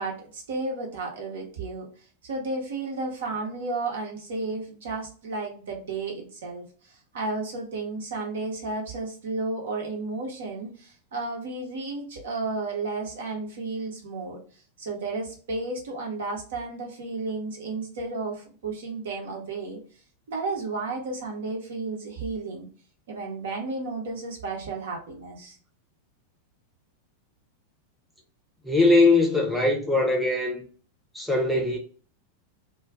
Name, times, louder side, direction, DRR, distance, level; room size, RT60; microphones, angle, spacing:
voice 1, 0.0-1.9 2.2-14.4 14.8-19.8 20.3-22.7 23.1-25.6, right 3 dB, 60° right, 0.9 m, -33 dB
voice 2, 28.6-30.6 31.1-31.8, left 2 dB, ahead, 0.7 m, -21 dB
2.4 x 2.4 x 3.4 m
figure-of-eight pair, 90°, 0 cm